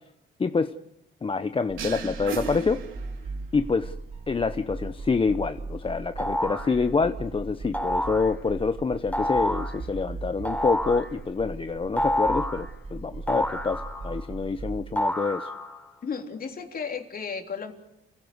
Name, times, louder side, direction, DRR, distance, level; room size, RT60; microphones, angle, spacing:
voice 1, 0.4-0.8 1.2-2.8 3.5-3.9 4.3-15.5, left 4 dB, 25° left, 11 dB, 0.8 m, -27 dB
sound 1, 1.7-14.8, right 3 dB, 30° right, 2.1 m, -38 dB
sound 2, 1.8-3.5, right 6 dB, 80° right, 3.3 m, -36 dB
sound 3, 6.2-6.7 7.7-8.3 9.1-9.7 10.4-11.1 12.0-12.6 13.3-14.2 15.0-15.8, left 1 dB, 5° left, 4.4 m, -28 dB
voice 2, 16.0-17.7, left 6 dB, 45° left, 4 dB, 3.5 m, -34 dB
29.5 x 16.5 x 8.1 m, 0.83 s
cardioid pair, 90°, 20 cm